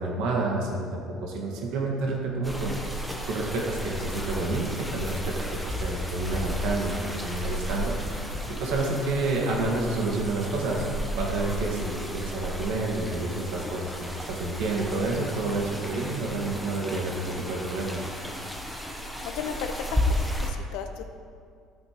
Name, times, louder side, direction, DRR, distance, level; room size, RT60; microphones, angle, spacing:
voice 1, 0.0-2.8 3.3-6.9 7.2-8.0 8.5-10.9 11.1-18.0, right 2 dB, 70° right, -1 dB, 1.6 m, -29 dB
sound 1, 2.4-20.5, equal, ahead, 0.8 m, -33 dB
voice 2, 19.2-21.0, left 7 dB, 70° left, 6 dB, 0.9 m, -35 dB
15.0 x 8.6 x 3.0 m, 2.2 s
cardioid pair, 165°, 0 cm